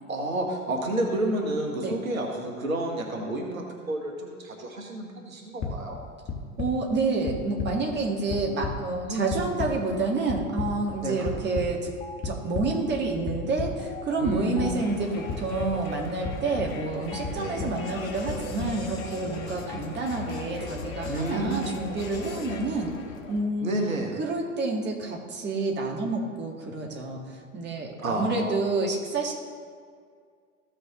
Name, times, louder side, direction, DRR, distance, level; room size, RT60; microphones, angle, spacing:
voice 1, 0.1-6.0 9.0-9.4 11.0-11.3 14.2-14.7 17.3-17.7 21.0-21.7 23.6-24.1 28.0-28.5, right 1 dB, 80° right, 1 dB, 1.4 m, -30 dB
sound 1, 5.6-5.7 6.3-6.7 7.3-7.7 8.1-8.7 9.3-9.7 10.3-10.7 11.2-11.7 12.2-12.6 13.3-13.7 14.2-14.7 15.3-15.7 16.2-16.7 17.2-17.7 18.3-18.7, left 6 dB, 40° left, 1.6 m, -31 dB
voice 2, 6.6-11.9 12.2-22.9 23.3-23.7 24.2-29.3, right 3 dB, 25° right, 0 dB, 1.7 m, -29 dB
sound 2, 12.0-12.2 12.6-22.4, left 2 dB, 15° left, 1.4 m, -41 dB
Crowd, 14.7-23.5, left 4 dB, 75° left, 1.1 m, -40 dB
15.0 x 6.5 x 3.0 m, 2.1 s
figure-of-eight pair, 80°, 40 cm